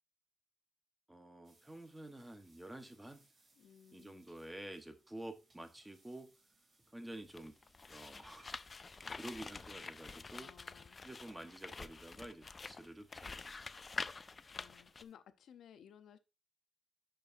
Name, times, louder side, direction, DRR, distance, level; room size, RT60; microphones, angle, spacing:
voice 1, 1.1-3.2 3.9-6.3 6.9-7.5 7.9-8.5 9.0-10.5 11.0-13.7, right 1 dB, 10° right, 1.1 m, -50 dB
sound 1, 1.4-15.1, right 2 dB, 40° right, 3.0 m, -72 dB
voice 2, 3.6-4.2 10.3-11.0 14.5-16.2, left 9 dB, 85° left, 0.6 m, -59 dB
sound 2, 7.2-15.0, left 4 dB, 30° left, 0.3 m, -47 dB
10.5 x 4.7 x 2.6 m
cardioid pair, 115°, 0 cm